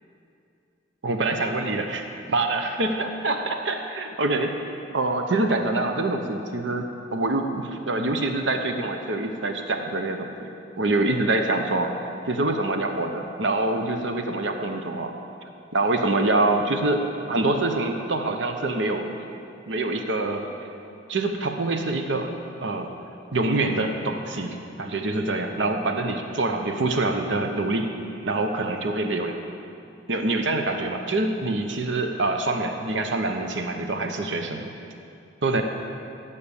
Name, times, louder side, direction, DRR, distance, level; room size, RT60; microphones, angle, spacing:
voice 1, 1.0-2.0 2.3-3.3 3.7-4.5 4.9-6.8 7.1-10.5 10.8-11.9 12.3-15.1 15.7-19.1 19.7-20.5 21.1-22.3 22.6-22.9 23.3-28.0 28.2-29.3 30.1-34.7 35.4-35.6, right 2 dB, 70° right, 5 dB, 0.9 m, -25 dB
17.0 x 7.0 x 7.0 m, 2.6 s
head